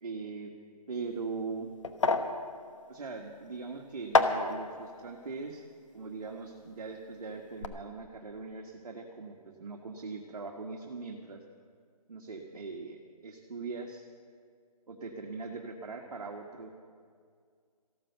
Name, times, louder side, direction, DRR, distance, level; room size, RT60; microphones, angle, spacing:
voice 1, 0.0-0.5 0.9-1.7 2.9-5.6 5.9-11.4 12.1-14.0 14.9-16.7, right 4 dB, 60° right, 1 dB, 1.5 m, -40 dB
sound 1, 0.9-7.1 7.4-7.7, left 3 dB, 50° left, 1.1 m, -32 dB
14.0 x 12.5 x 6.8 m, 2.1 s
hypercardioid pair, 175°, 20 cm